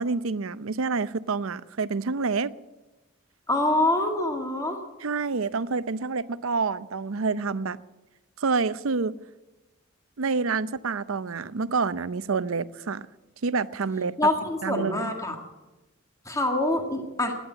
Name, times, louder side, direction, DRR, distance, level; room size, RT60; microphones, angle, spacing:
voice 1, 0.0-2.5 5.0-7.8 8.4-9.1 10.2-13.0 13.4-14.2 14.6-15.1, right 4 dB, 70° right, 0.6 m, -27 dB
voice 2, 3.5-4.8 14.2-15.4 16.3-17.4, left 1 dB, 15° left, 1.8 m, -25 dB
17.5 x 10.0 x 8.1 m
head